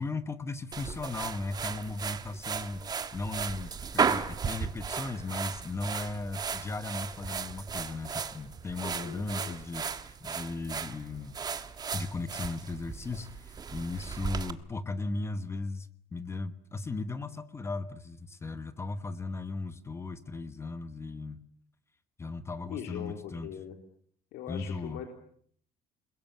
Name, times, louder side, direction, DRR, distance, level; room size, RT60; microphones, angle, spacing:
voice 1, 0.0-2.8 3.1-11.4 11.9-21.4 22.2-23.5 24.5-25.0, left 3 dB, 15° left, 12 dB, 1.2 m, -37 dB
sound 1, 0.7-14.5, right 6 dB, 25° right, 1.3 m, -35 dB
voice 2, 8.9-9.6 22.7-23.8 24.3-25.0, left 9 dB, 80° left, 4 dB, 3.6 m, -41 dB
29.0 x 22.0 x 9.1 m, 0.64 s
cardioid pair, 170°, 17 cm